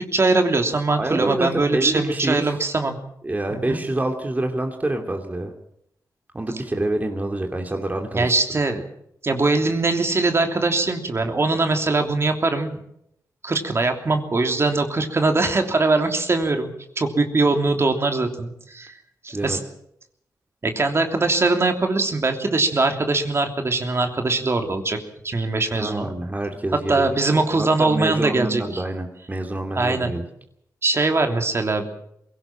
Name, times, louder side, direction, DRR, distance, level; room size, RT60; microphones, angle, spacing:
voice 1, 0.1-3.0 3.5-3.8 8.1-8.8 9.2-12.8 13.4-16.7 17.0-18.9 19.2-19.6 20.6-25.0 25.2-26.1 26.7-28.8 29.7-30.1 30.8-31.9, right 3 dB, 40° right, 5 dB, 3.1 m, -21 dB
voice 2, 1.0-2.5 3.2-5.5 6.3-8.3 19.3-19.6 25.7-30.2, right 2 dB, 25° right, 4 dB, 2.7 m, -27 dB
22.5 x 17.5 x 7.4 m, 0.74 s
cardioid pair, 75°, 7 cm